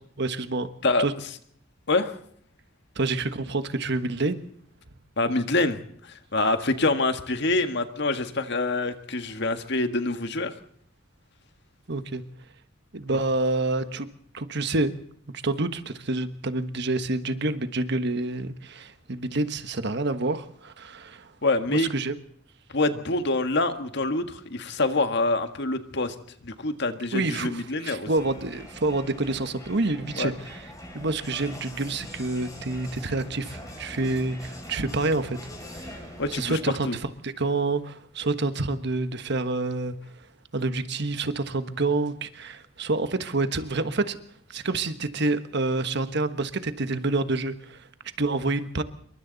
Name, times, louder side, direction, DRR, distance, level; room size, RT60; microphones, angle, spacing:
voice 1, 0.2-0.7 1.0-1.1 2.9-4.4 11.9-12.2 12.9-14.1 14.3-14.9 15.4-21.3 21.7-22.1 27.1-30.6 30.9-35.4 35.7-40.0 40.5-44.2 44.5-47.9 48.2-48.8, right 2 dB, 60° right, 10 dB, 1.4 m, -28 dB
voice 2, 5.2-10.5 21.4-21.9 22.7-26.1 26.4-28.1 30.2-30.3 36.2-37.0, left 2 dB, 60° left, 8 dB, 1.7 m, -26 dB
Crowd, 28.1-36.9, left 1 dB, 15° left, 6.5 m, -42 dB
27.5 x 23.5 x 4.1 m, 0.65 s
head